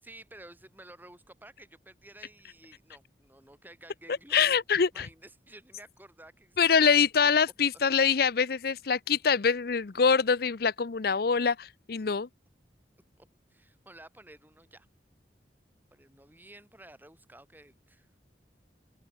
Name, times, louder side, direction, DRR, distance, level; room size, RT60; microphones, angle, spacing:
voice 1, 0.0-4.6 4.9-6.6 7.0-7.5 13.5-14.9 15.9-18.1, right 1 dB, 10° right, 7.1 m, -52 dB
voice 2, 4.3-5.1 6.6-12.3, left 6 dB, 60° left, 0.6 m, -24 dB
open air
head